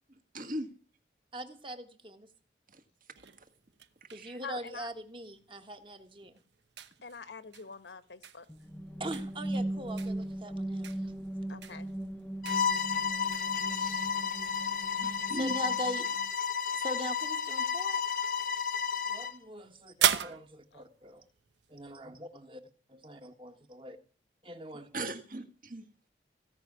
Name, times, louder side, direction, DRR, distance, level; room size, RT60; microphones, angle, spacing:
voice 1, 0.3-0.7 2.7-2.8 3.4-3.5 4.1-4.4 13.7-14.4 15.0-15.6 24.7-25.9, right 1 dB, 50° right, 7 dB, 1.7 m, -39 dB
voice 2, 1.3-2.3 4.1-6.3 9.0-10.9 15.0-16.1 16.7-18.0 19.1-21.2 21.7-22.6 22.9-24.0 24.4-24.9, right 1 dB, 30° right, 7 dB, 1.5 m, -42 dB
sound 1, 3.1-21.9, right 9 dB, 85° right, 1.0 m, -40 dB
voice 3, 4.4-4.9 7.0-8.4 8.9-9.0 11.5-11.9 20.7-20.8, left 4 dB, 85° left, 12 dB, 1.3 m, -45 dB
sound 2, 8.5-16.3, right 1 dB, 10° left, 0.7 m, -38 dB
Bowed string instrument, 12.4-19.4, left 6 dB, 50° left, 0.9 m, -32 dB
17.0 x 5.9 x 9.7 m, 0.42 s
head